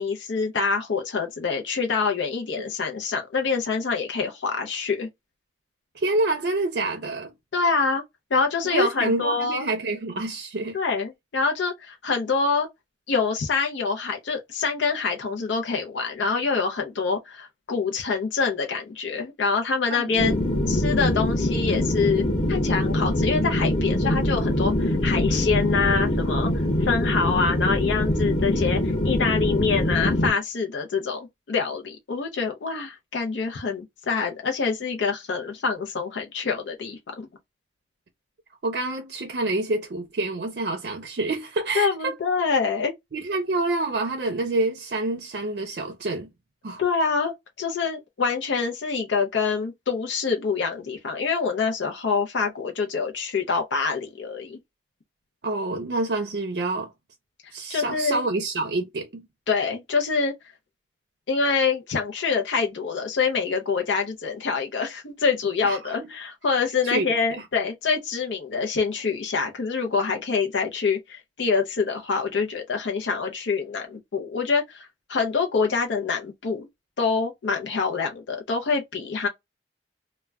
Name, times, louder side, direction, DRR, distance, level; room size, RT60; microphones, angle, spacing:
voice 1, 0.0-5.1 7.5-8.0 8.3-9.7 10.7-12.7 13.1-20.3 20.7-26.5 26.8-37.3 41.7-42.9 46.8-54.6 57.7-58.2 59.5-60.3 61.3-76.7 77.0-79.3, left 5 dB, 85° left, 0.5 m, -26 dB
voice 2, 6.0-7.3 8.6-10.8 19.9-20.6 38.6-42.1 43.1-46.3 46.6-46.8 55.4-56.9 57.5-59.3 65.6-65.8 66.8-67.1, right 2 dB, 60° right, 0.5 m, -27 dB
sound 1, 20.2-30.3, left 1 dB, 25° left, 0.9 m, -23 dB
2.1 x 2.1 x 3.4 m
head